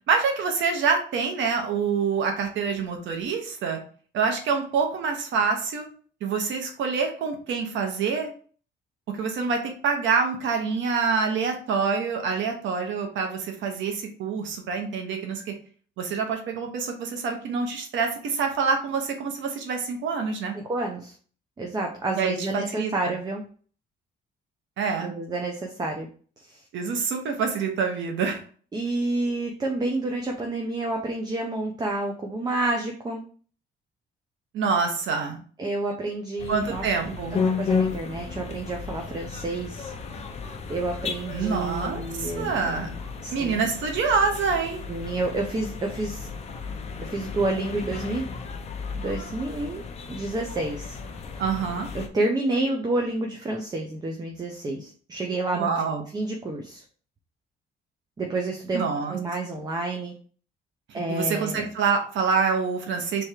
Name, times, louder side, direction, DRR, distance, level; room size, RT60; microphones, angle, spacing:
voice 1, 0.1-3.8 4.1-5.9 6.2-8.3 9.2-15.5 16.0-20.6 22.1-23.1 24.8-25.1 26.7-28.4 34.5-35.4 36.5-37.4 41.3-42.9 43.3-44.8 51.4-51.9 55.5-56.0 58.7-59.2 60.9-63.2, right 5 dB, 75° right, 4 dB, 1.0 m, -26 dB
voice 2, 20.5-21.1 21.6-23.4 25.0-26.1 26.4-26.6 28.7-33.2 35.6-39.9 40.7-43.7 44.9-46.3 47.0-48.2 48.9-49.8 50.1-51.0 51.9-56.8 58.2-58.8 59.1-60.1 60.9-61.7, right 2 dB, 20° right, 2 dB, 0.6 m, -29 dB
sound 1, 36.4-52.1, left 5 dB, 35° left, 0.6 m, -33 dB
3.5 x 3.2 x 4.5 m, 0.43 s
cardioid pair, 150°, 20 cm